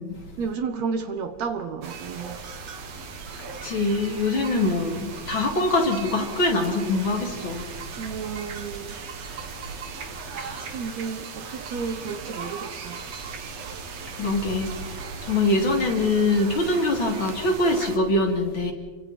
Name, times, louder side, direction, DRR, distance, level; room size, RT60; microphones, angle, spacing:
voice 1, 0.4-2.4 8.0-9.0 10.2-13.0 15.5-15.8, right 5 dB, 70° right, 1.7 m, -32 dB
sound 1, 1.8-18.0, right 5 dB, 50° right, 2.2 m, -38 dB
voice 2, 3.6-7.6 10.3-10.6 14.1-18.7, left 2 dB, 35° left, 3.2 m, -24 dB
28.5 x 25.0 x 4.3 m
omnidirectional pair, 4.5 m